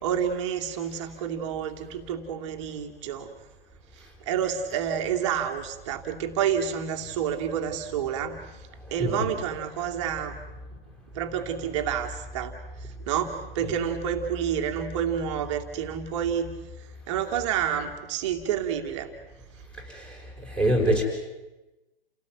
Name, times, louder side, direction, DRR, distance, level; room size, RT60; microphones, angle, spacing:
voice 1, 0.0-3.3 4.3-8.4 8.9-10.3 11.1-12.5 13.1-16.5 17.1-19.1, right 8 dB, 30° right, 4 dB, 2.4 m, -29 dB
voice 2, 9.0-9.3 13.6-13.7 19.9-21.0, equal, 5° left, 0 dB, 5.8 m, -26 dB
30.0 x 18.0 x 9.4 m, 1.0 s
figure-of-eight pair, 140°, 29 cm